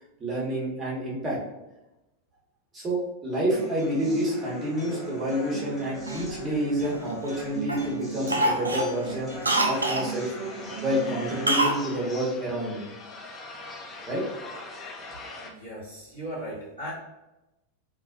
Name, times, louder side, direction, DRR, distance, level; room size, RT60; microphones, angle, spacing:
voice 1, 0.2-1.4 2.7-9.3 9.6-10.3 10.8-12.9 14.1-14.2, right 1 dB, 20° right, -5 dB, 1.0 m, -28 dB
sound 1, 3.5-11.5, right 2 dB, 5° left, 0.9 m, -38 dB
Cough, 6.1-7.3 7.7-7.9 8.3-10.1 11.5-11.8 12.1-12.2, right 1 dB, 80° right, 0.3 m, -26 dB
sound 2, 9.7-15.5, left 3 dB, 25° left, 0.4 m, -42 dB
voice 2, 15.4-16.9, equal, 85° left, -11 dB, 1.4 m, -37 dB
3.1 x 2.1 x 2.4 m, 0.96 s
figure-of-eight pair, 90°, 0 cm